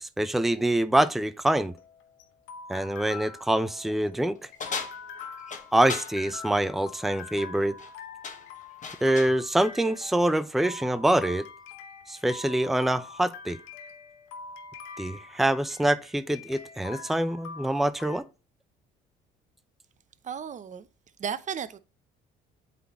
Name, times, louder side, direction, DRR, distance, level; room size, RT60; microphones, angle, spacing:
voice 1, 0.0-1.7 2.7-4.4 5.7-7.7 9.0-11.5 12.1-13.6 15.0-18.2, right 1 dB, ahead, 0.5 m, -25 dB
sound 1, 1.5-18.2, left 5 dB, 85° left, 0.9 m, -44 dB
sound 2, 4.6-6.1 7.6-7.9 8.2-9.4, left 5 dB, 40° left, 1.5 m, -37 dB
voice 2, 20.2-20.9 21.2-21.8, right 7 dB, 40° right, 0.7 m, -34 dB
8.1 x 4.2 x 3.0 m
supercardioid pair, 75°, 20 cm